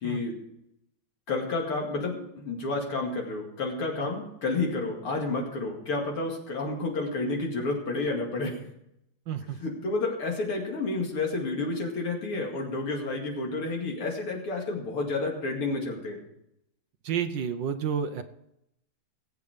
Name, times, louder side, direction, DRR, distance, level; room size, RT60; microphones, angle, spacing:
voice 1, 0.0-0.4 1.3-8.6 9.6-16.2, left 3 dB, 80° left, 0 dB, 3.2 m, -30 dB
voice 2, 9.3-9.6 17.0-18.2, right 7 dB, 65° right, 9 dB, 1.4 m, -30 dB
19.5 x 8.5 x 5.1 m, 0.81 s
omnidirectional pair, 2.4 m